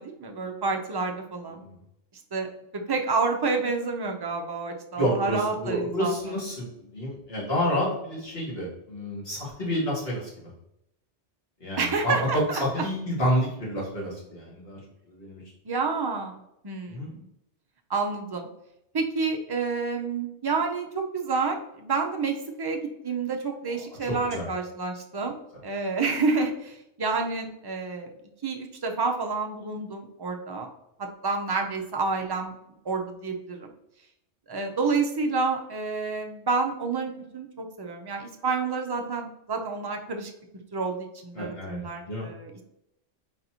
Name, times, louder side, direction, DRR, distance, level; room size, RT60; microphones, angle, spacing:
voice 1, 0.0-1.6 2.3-2.5 2.9-6.2 11.8-12.6 15.6-16.4 16.6-17.2 17.9-18.5 18.9-25.4 25.6-28.1 28.4-30.7 31.0-32.5 32.9-33.7 34.5-40.3 40.7-42.6, right 4 dB, 35° right, 3 dB, 0.4 m, -29 dB
voice 2, 5.0-10.5 11.6-14.8 15.1-15.4 16.9-17.1 24.0-24.4 41.3-42.3, equal, 55° left, -6 dB, 2.2 m, -29 dB
4.0 x 4.0 x 2.9 m, 0.81 s
omnidirectional pair, 1.2 m